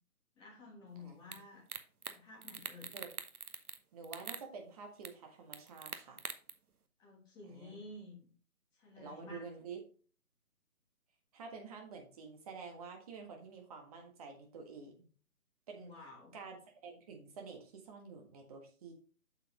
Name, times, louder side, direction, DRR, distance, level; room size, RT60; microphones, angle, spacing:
voice 1, 0.4-1.6 2.1-2.9 7.0-8.3 8.7-9.5 15.8-16.3, left 2 dB, 10° left, -3 dB, 1.5 m, -52 dB
voice 2, 1.0-1.4 2.9-3.1 3.9-6.2 7.5-7.8 9.0-9.8 11.3-15.1 15.7-15.9 16.3-16.6 16.8-18.9, right 5 dB, 25° right, 2 dB, 1.6 m, -49 dB
sound 1, 1.3-1.4 1.7-2.2 2.4-3.8 4.0-4.4 5.0-5.1 5.5-6.5, right 5 dB, 80° right, 1.1 m, -43 dB
7.7 x 6.8 x 3.1 m, 0.39 s
figure-of-eight pair, 145°, 44 cm